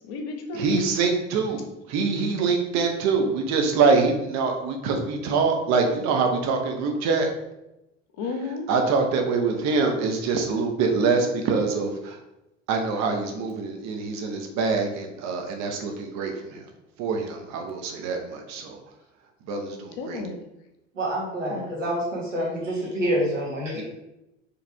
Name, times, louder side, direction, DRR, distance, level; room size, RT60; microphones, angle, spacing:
voice 1, 0.0-0.8 8.2-8.6 20.0-20.4 21.5-21.8, left 3 dB, 60° left, 4 dB, 0.9 m, -33 dB
voice 2, 0.5-7.3 8.7-12.2 12.7-16.6 17.0-18.8 19.5-20.2 23.7-23.8, right 4 dB, 45° right, 3 dB, 0.9 m, -24 dB
voice 3, 20.9-23.8, equal, 85° right, -4 dB, 1.5 m, -27 dB
4.8 x 3.3 x 3.4 m, 0.91 s
figure-of-eight pair, 70°, 37 cm